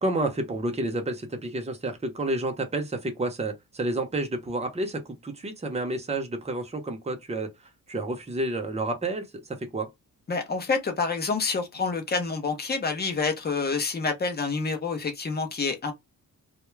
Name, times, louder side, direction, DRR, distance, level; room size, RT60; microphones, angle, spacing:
voice 1, 0.0-7.5 7.9-9.3 9.6-9.9, right 2 dB, 20° right, 0.7 m, -30 dB
voice 2, 10.3-15.9, left 4 dB, 25° left, 0.7 m, -28 dB
2.3 x 2.1 x 3.1 m
wide cardioid pair, 115°, 37 cm